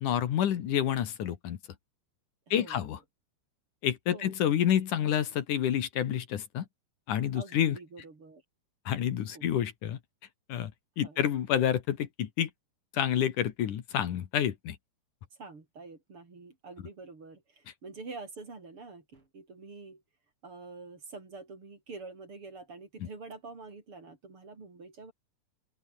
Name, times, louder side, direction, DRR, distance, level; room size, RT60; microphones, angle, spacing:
voice 1, 0.0-1.6 2.5-3.0 3.8-6.6 7.1-7.8 8.9-10.0 10.5-10.7 11.0-12.5 12.9-14.8 23.0-23.1, left 10 dB, 70° left, 3.1 m, -28 dB
voice 2, 2.5-2.9 4.1-4.4 7.3-8.4 9.3-9.5 11.0-11.3 15.4-20.0 20.4-25.1, right 3 dB, 40° right, 4.9 m, -47 dB
open air
omnidirectional pair, 3.9 m